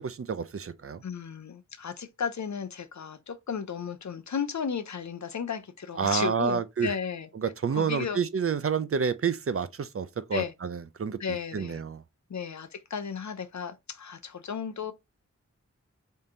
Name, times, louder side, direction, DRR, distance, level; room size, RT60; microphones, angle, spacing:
voice 1, 0.0-1.0 6.0-6.9 7.3-12.0, right 6 dB, 50° right, 0.5 m, -29 dB
voice 2, 1.0-7.3 7.7-8.2 10.3-10.5 11.2-11.8 12.3-14.9, left 6 dB, 65° left, 0.6 m, -34 dB
3.6 x 2.7 x 3.7 m
wide cardioid pair, 45°, 30 cm